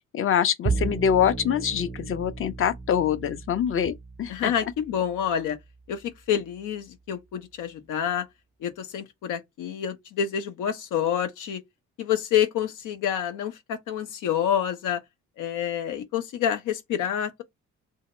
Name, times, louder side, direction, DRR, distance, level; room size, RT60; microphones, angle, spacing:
voice 1, 0.0-4.5, left 8 dB, 45° left, 0.6 m, -25 dB
Bowed string instrument, 0.6-7.1, right 4 dB, 20° right, 0.5 m, -35 dB
voice 2, 4.3-5.6 5.9-8.3 8.6-11.6 12.0-15.0 15.4-17.4, left 9 dB, 85° left, 0.8 m, -28 dB
2.8 x 2.8 x 4.2 m
cardioid pair, 90°, 30 cm